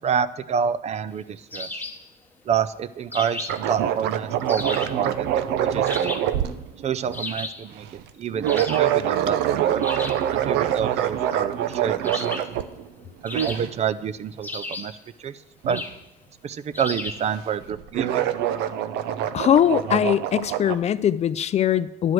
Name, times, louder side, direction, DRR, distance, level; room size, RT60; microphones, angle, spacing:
voice 1, 0.0-1.8 2.5-6.1 6.8-7.8 8.2-9.8 10.3-12.4 13.2-15.3 15.7-15.8 16.4-18.3, right 7 dB, 40° right, 15 dB, 0.4 m, -28 dB
sound 1, 1.5-2.1 3.1-3.7 4.5-5.0 5.9-6.4 7.1-7.7 8.4-9.0 9.8-10.3 12.0-12.6 13.3-13.9 14.4-15.0 15.7-16.0 16.7-17.3, left 2 dB, 10° left, 0.9 m, -34 dB
sound 2, 3.5-7.2 7.8-8.0 8.3-12.9 13.3-13.7 15.6-15.8 17.1-17.3 17.6-20.8, right 10 dB, 85° right, 0.6 m, -25 dB
voice 2, 19.3-22.1, left 9 dB, 40° left, 16 dB, 0.4 m, -21 dB
11.0 x 4.8 x 7.7 m, 0.94 s
cardioid pair, 110°, 17 cm